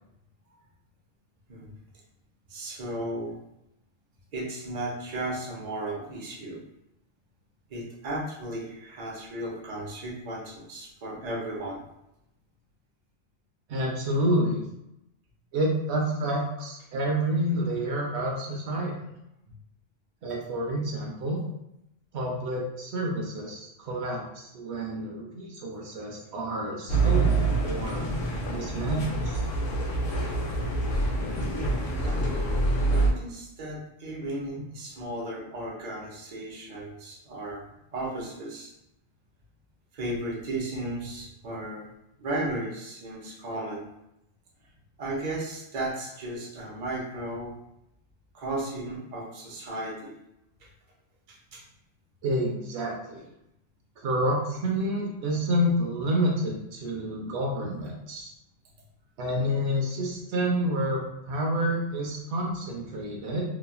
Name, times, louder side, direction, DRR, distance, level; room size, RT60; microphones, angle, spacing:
voice 1, 2.5-3.4 4.3-6.6 7.7-11.8 32.0-32.5 32.9-38.7 39.9-41.9 42.2-43.9 45.0-47.5 48.3-50.1 51.3-51.6, right 1 dB, 45° right, -3 dB, 0.7 m, -35 dB
voice 2, 13.7-14.6 15.5-18.9 20.2-21.4 22.1-28.0 28.5-29.4 52.2-53.3 54.0-58.3 59.2-63.4, equal, 75° right, -1 dB, 0.9 m, -29 dB
sound 1, 26.9-33.1, right 2 dB, 60° left, 0.7 m, -26 dB
3.0 x 2.3 x 2.2 m, 0.84 s
omnidirectional pair, 1.2 m